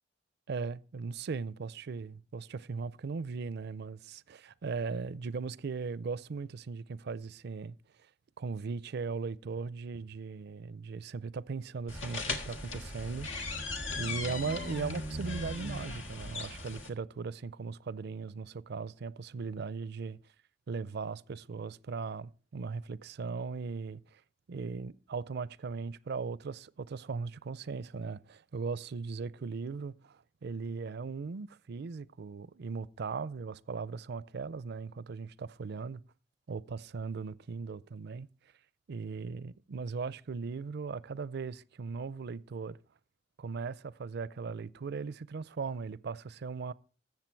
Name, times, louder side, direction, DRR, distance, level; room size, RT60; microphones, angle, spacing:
voice 1, 0.5-7.8 8.4-13.3 14.0-20.2 20.7-24.2 24.5-36.0 36.5-38.3 38.9-42.8 43.4-46.7, right 4 dB, 60° right, 0.4 m, -38 dB
sound 1, 11.9-16.9, left 2 dB, 90° left, 1.7 m, -38 dB
13.5 x 7.4 x 4.5 m
head